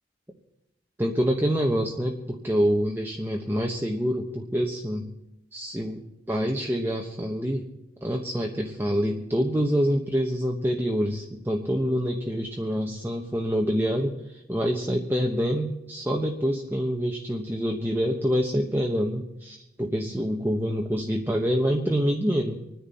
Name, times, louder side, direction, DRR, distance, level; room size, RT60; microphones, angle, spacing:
voice 1, 1.0-5.1 5.5-7.7 8.0-22.6, equal, 10° right, 0 dB, 1.1 m, -26 dB
26.0 x 10.0 x 4.2 m, 0.87 s
head